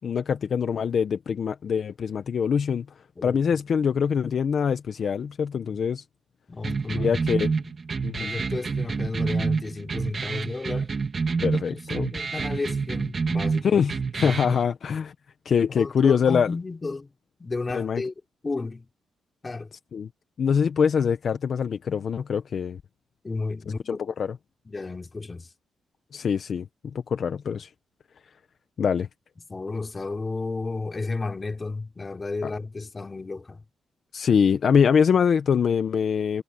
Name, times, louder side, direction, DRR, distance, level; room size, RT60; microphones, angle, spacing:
voice 1, 0.0-2.9 3.2-6.0 6.9-7.5 8.0-8.4 11.4-12.1 13.6-15.1 15.4-16.5 17.7-18.0 19.9-20.1 20.4-22.8 23.9-24.4 26.1-27.7 28.8-29.1 32.4-32.5 34.1-36.4, left 7 dB, 55° left, 1.0 m, -24 dB
voice 2, 6.5-7.2 8.2-10.9 11.5-13.8 14.2-14.4 15.8-17.1 17.4-18.1 18.4-18.9 19.4-19.7 23.2-24.0 24.7-25.5 29.5-33.6, left 3 dB, 25° left, 3.0 m, -33 dB
sound 1, 6.6-14.6, right 5 dB, 35° right, 1.9 m, -28 dB
cardioid pair, 125°, 0 cm